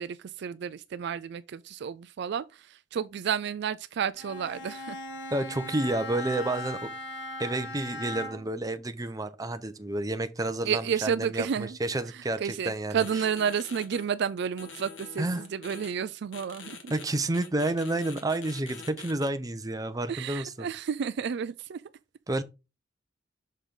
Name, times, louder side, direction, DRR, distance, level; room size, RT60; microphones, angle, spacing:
voice 1, 0.0-5.0 10.6-11.8 12.4-16.8 20.1-21.8, right 7 dB, 60° right, 0.4 m, -31 dB
Bowed string instrument, 4.2-8.6, left 2 dB, 65° left, 1.6 m, -39 dB
voice 2, 5.3-6.8 7.4-13.0 15.2-15.4 16.9-20.7 22.3-22.4, right 2 dB, 20° right, 0.7 m, -30 dB
sound 1, 12.9-14.0 14.6-15.9 16.3-17.0 17.3-19.3, left 5 dB, 85° left, 1.6 m, -44 dB
6.6 x 4.9 x 3.7 m
head